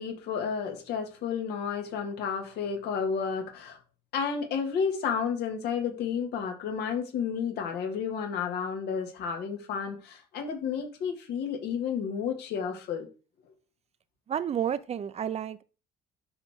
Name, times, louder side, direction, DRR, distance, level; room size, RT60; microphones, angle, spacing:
voice 1, 0.0-3.8 4.1-13.1, left 6 dB, 75° left, 2.4 m, -31 dB
voice 2, 14.3-15.6, right 9 dB, 40° right, 0.7 m, -31 dB
11.5 x 4.8 x 3.8 m
cardioid pair, 110°, 17 cm